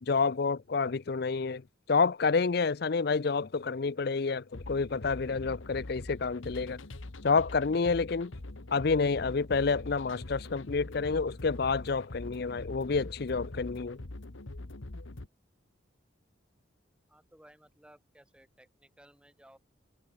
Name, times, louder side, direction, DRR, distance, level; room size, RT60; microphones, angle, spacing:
voice 1, 0.0-1.6 1.9-6.8 7.2-8.3 8.7-14.0, left 4 dB, 55° left, 0.5 m, -29 dB
sound 1, 4.5-15.3, left 2 dB, 85° left, 1.4 m, -43 dB
voice 2, 17.1-19.6, right 1 dB, 5° right, 3.9 m, -59 dB
head